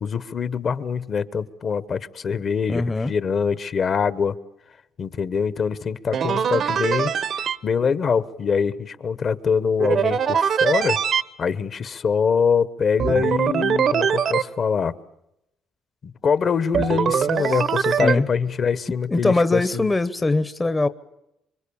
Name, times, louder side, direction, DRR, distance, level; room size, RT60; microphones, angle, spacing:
voice 1, 0.0-4.4 5.0-11.0 11.4-14.9 16.2-19.9, left 6 dB, 45° left, 1.1 m, -24 dB
voice 2, 2.7-3.1 17.4-17.6 18.0-18.3 19.1-20.9, left 2 dB, 15° left, 0.8 m, -22 dB
sound 1, 6.1-7.6 9.8-11.2 13.0-14.4 16.7-18.2, right 7 dB, 55° right, 1.0 m, -22 dB
26.5 x 24.0 x 7.0 m
cardioid pair, 115°, 0 cm